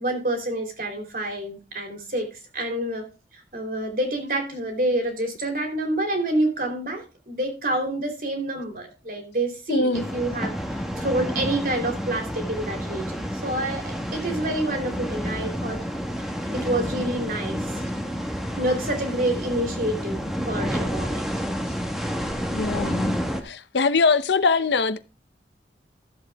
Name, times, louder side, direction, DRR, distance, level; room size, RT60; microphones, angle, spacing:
voice 1, 0.0-15.8 16.2-17.7 18.6-21.3, right 1 dB, 50° right, 3.1 m, -28 dB
voice 2, 9.7-10.0 22.5-25.0, left 4 dB, 80° left, 0.7 m, -22 dB
sound 1, 9.9-23.4, equal, ahead, 1.2 m, -29 dB
13.5 x 7.5 x 3.4 m
head